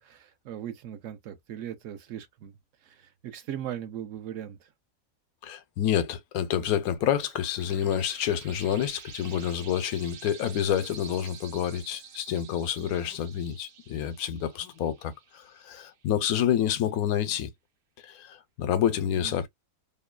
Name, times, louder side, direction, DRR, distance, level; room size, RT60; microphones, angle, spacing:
voice 1, 0.0-2.5 2.8-4.7 19.2-19.4, right 10 dB, 70° right, 0.9 m, -39 dB
voice 2, 5.4-17.5 18.0-19.5, left 10 dB, 85° left, 1.1 m, -28 dB
sound 1, 6.8-16.0, right 7 dB, 85° right, 1.2 m, -49 dB
3.0 x 2.1 x 2.2 m
omnidirectional pair, 1.5 m